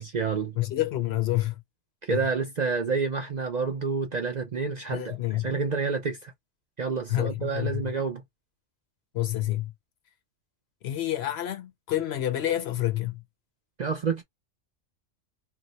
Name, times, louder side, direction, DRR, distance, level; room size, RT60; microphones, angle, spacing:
voice 1, 0.0-0.6 2.1-5.2 5.4-6.3 6.8-8.2 13.8-14.2, right 5 dB, 45° right, 0.6 m, -28 dB
voice 2, 0.6-1.6 2.1-2.2 4.9-5.5 7.1-7.9 9.1-9.7 10.8-13.2, left 14 dB, 65° left, 0.8 m, -28 dB
2.8 x 2.1 x 3.9 m
omnidirectional pair, 1.3 m